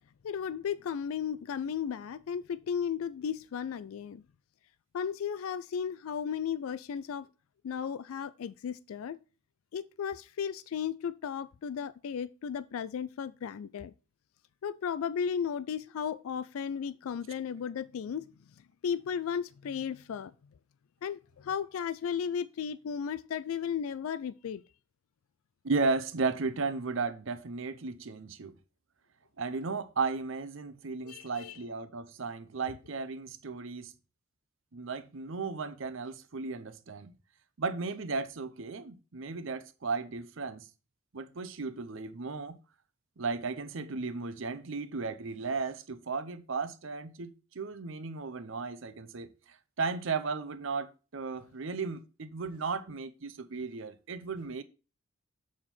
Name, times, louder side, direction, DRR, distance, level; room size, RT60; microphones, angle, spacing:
voice 1, 0.2-4.2 4.9-7.3 7.6-9.2 9.7-13.9 14.6-18.3 18.8-20.3 21.0-24.6 31.0-31.6, left 7 dB, 85° left, 0.3 m, -35 dB
voice 2, 25.6-28.5 29.4-33.9 34.7-37.1 37.6-40.7 41.1-42.6 43.2-49.3 49.8-54.6, right 4 dB, 70° right, 0.7 m, -35 dB
7.3 x 4.4 x 4.2 m
head